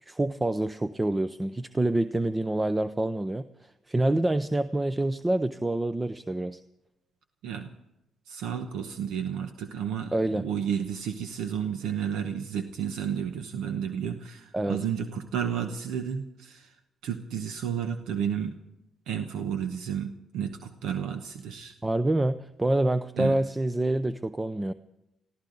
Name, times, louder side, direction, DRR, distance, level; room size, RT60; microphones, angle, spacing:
voice 1, 0.0-3.4 3.9-6.6 10.1-10.4 14.5-14.8 21.8-24.7, right 1 dB, 15° right, 11 dB, 0.6 m, -27 dB
voice 2, 8.3-16.7 17.0-18.5 19.1-21.7 23.2-23.4, right 8 dB, 85° right, 7 dB, 1.0 m, -32 dB
23.0 x 15.0 x 3.9 m, 0.90 s
cardioid pair, 90°, 0 cm